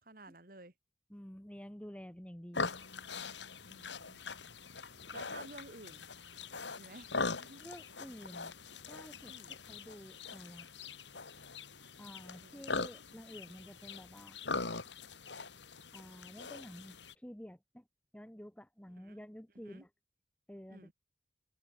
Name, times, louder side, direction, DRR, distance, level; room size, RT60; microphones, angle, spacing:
voice 1, 0.0-0.7 3.7-4.2 5.1-6.1 6.8-7.6 9.3-9.6 12.4-12.9 19.0-19.2 19.6-19.8 20.7-20.9, right 2 dB, 50° right, 2.3 m, -53 dB
voice 2, 1.1-2.7 7.6-8.6 8.9-10.7 12.0-14.4 15.9-17.9 18.1-19.9 20.5-20.9, equal, 5° left, 1.2 m, -50 dB
sound 1, 2.5-17.1, left 4 dB, 85° left, 2.9 m, -42 dB
head